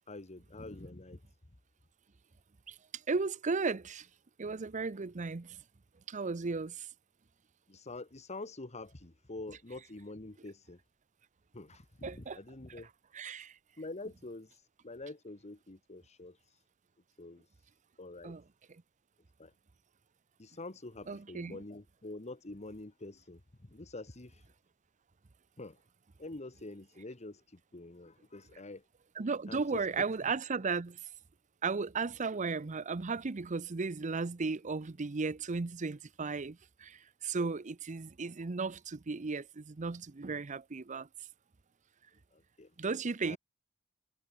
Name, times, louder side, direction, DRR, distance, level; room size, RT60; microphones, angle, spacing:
voice 1, 0.1-1.2 7.7-10.8 11.5-12.9 13.8-16.6 17.2-17.5 18.0-18.4 19.4-19.5 20.4-24.5 25.6-25.8 26.2-28.8 29.5-30.0 37.4-37.5 42.3-42.7 43.2-43.4, left 2 dB, 30° left, 1.4 m, -46 dB
voice 2, 3.1-4.1 4.4-5.6 6.1-6.9 12.0-12.4 13.1-13.6 18.2-18.4 21.1-21.6 29.2-31.0 31.6-41.1 42.8-43.4, right 4 dB, 35° right, 0.6 m, -35 dB
head